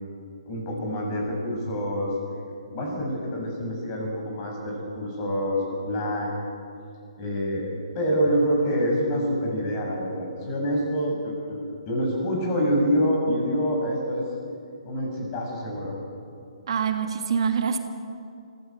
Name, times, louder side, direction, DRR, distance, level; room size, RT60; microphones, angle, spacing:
voice 1, 0.5-2.1 2.7-6.4 7.2-11.6 11.9-14.3 14.8-15.9, equal, 35° left, 0 dB, 7.1 m, -26 dB
voice 2, 16.7-17.8, right 6 dB, 60° right, 6 dB, 1.7 m, -25 dB
22.0 x 15.5 x 7.9 m, 2.4 s
hypercardioid pair, 140°, 3 cm